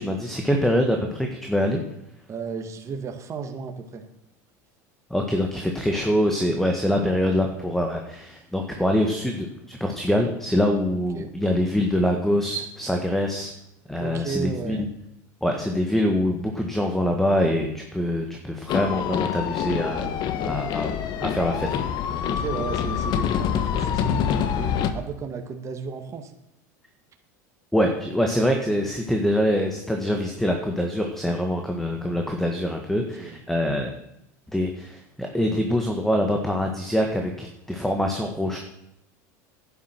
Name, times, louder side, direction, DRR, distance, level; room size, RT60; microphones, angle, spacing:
voice 1, 0.0-1.8 5.1-13.5 13.9-14.8 15.4-20.1 20.4-20.9 21.2-21.9 27.7-33.9 34.5-38.6, equal, 5° left, 3 dB, 1.6 m, -24 dB
voice 2, 2.3-4.0 11.1-11.3 14.0-14.9 22.2-26.3 33.0-33.4, right 5 dB, 35° right, 5 dB, 1.8 m, -33 dB
sound 1, 18.7-24.9, left 9 dB, 50° left, 1.3 m, -26 dB
11.0 x 9.8 x 6.0 m, 0.85 s
supercardioid pair, 105°, 9 cm